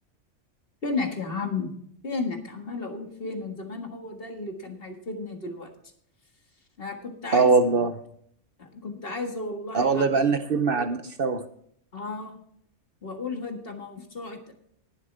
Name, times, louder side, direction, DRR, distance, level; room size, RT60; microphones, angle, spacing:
voice 1, 0.8-1.7 2.0-5.7 6.8-7.5 8.6-10.1 11.9-12.4 13.0-14.5, left 3 dB, 50° left, 4 dB, 1.9 m, -33 dB
voice 2, 7.3-7.9 9.7-11.4, right 4 dB, 55° right, 9 dB, 0.9 m, -22 dB
19.5 x 7.4 x 3.4 m, 0.65 s
omnidirectional pair, 1.2 m